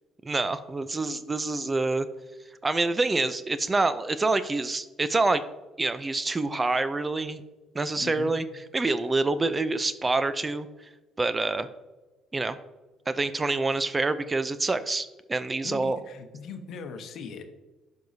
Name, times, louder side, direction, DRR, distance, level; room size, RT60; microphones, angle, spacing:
voice 1, 0.2-2.1 2.6-5.4 5.8-7.4 7.7-10.7 11.2-11.7 12.3-12.6 13.1-16.0, right 3 dB, 25° right, 13 dB, 0.5 m, -26 dB
voice 2, 8.0-8.3 15.6-17.5, left 5 dB, 65° left, 7 dB, 0.9 m, -40 dB
12.0 x 4.6 x 2.7 m, 1.2 s
supercardioid pair, 65°, 0 cm